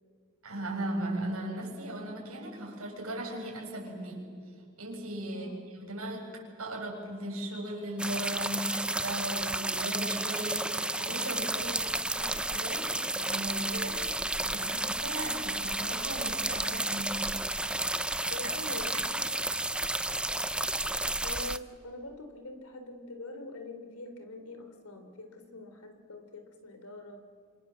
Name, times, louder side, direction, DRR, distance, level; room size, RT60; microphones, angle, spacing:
voice 1, 0.4-4.3 4.8-10.7 11.0-11.7 12.2-12.9 13.1-17.3 18.4-19.1 19.4-19.6, right 1 dB, 75° right, -1 dB, 7.9 m, -37 dB
voice 2, 5.3-5.6 11.6-11.9 18.3-19.3 21.2-27.2, left 2 dB, 90° left, 7 dB, 3.7 m, -44 dB
sound 1, 8.0-21.6, right 2 dB, 5° right, 0.6 m, -32 dB
27.5 x 26.5 x 7.7 m, 2.2 s
head